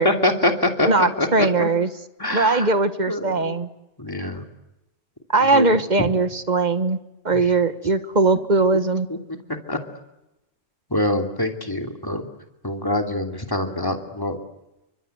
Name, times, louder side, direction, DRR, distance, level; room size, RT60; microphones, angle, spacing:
voice 1, 0.0-1.7 2.2-2.7 3.1-3.5 4.0-4.4 5.4-6.1 7.3-7.5 9.1-9.4 9.7-9.8 10.9-12.3 12.6-14.4, left 1 dB, 20° left, 4 dB, 2.9 m, -25 dB
voice 2, 0.8-1.9 2.3-3.7 5.3-7.0 7.2-9.1, right 3 dB, 40° right, 11 dB, 1.5 m, -20 dB
29.5 x 25.0 x 8.1 m, 0.94 s
omnidirectional pair, 1.2 m